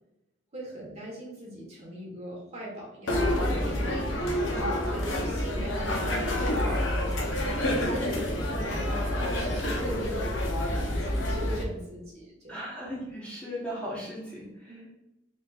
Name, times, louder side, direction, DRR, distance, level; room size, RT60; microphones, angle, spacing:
voice 1, 0.5-4.0 4.5-8.9 9.3-12.6 14.7-14.9, equal, 35° right, -3 dB, 1.2 m, -40 dB
sound 1, 3.1-11.6, left 1 dB, 80° left, 0.7 m, -28 dB
voice 2, 12.5-14.8, equal, 5° left, -7 dB, 0.9 m, -37 dB
4.2 x 3.2 x 2.3 m, 0.91 s
head